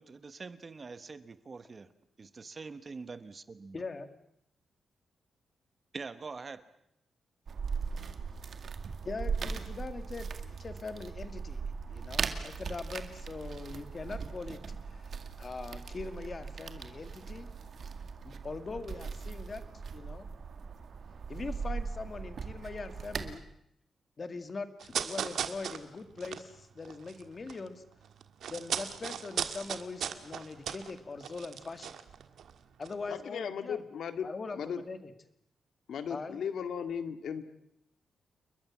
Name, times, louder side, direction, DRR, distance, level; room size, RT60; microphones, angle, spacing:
voice 1, 0.0-1.9 2.2-3.8 5.9-6.7, right 4 dB, 30° right, 13 dB, 1.1 m, -44 dB
voice 2, 3.7-4.1 9.0-10.3 10.6-11.6 11.9-15.1 15.4-17.5 18.2-19.6 19.9-20.3 21.3-23.4 24.2-27.8 28.5-32.0 32.8-33.8 34.2-35.1 36.1-36.4, left 4 dB, 30° left, 9 dB, 2.0 m, -41 dB
sound 1, 7.5-23.4, right 5 dB, 50° right, 2.1 m, -39 dB
sound 2, 24.8-27.7 27.9-32.5 32.8-32.9, right 8 dB, 75° right, 1.8 m, -37 dB
voice 3, 33.1-34.3 34.5-34.8 35.9-37.4, left 7 dB, 70° left, 9 dB, 2.0 m, -36 dB
29.5 x 22.0 x 7.3 m, 0.77 s
wide cardioid pair, 165°, 0 cm